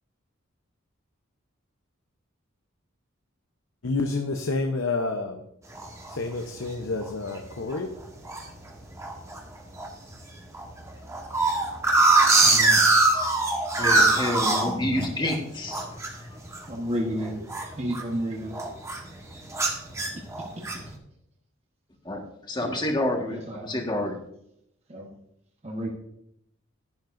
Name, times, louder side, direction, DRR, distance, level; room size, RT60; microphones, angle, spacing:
voice 1, 3.8-5.4 6.1-8.0, left 3 dB, 75° left, 4 dB, 0.8 m, -29 dB
sound 1, 5.8-6.2 6.7-6.8 7.0-7.4 7.7-8.4 9.0-9.4 9.7-9.9 10.1-10.2 10.5-15.4 15.7-18.2 18.5-19.1 19.5-20.9, right 2 dB, 15° right, 1.3 m, -22 dB
voice 2, 12.4-12.8 16.7-17.4 17.8-18.7 22.6-22.7 23.3-23.7 24.9-25.1 25.6-25.9, equal, 30° right, -1 dB, 1.2 m, -31 dB
voice 3, 13.8-16.2 22.0-24.2, left 1 dB, 20° left, 2 dB, 1.6 m, -29 dB
12.0 x 10.5 x 2.6 m, 0.77 s
head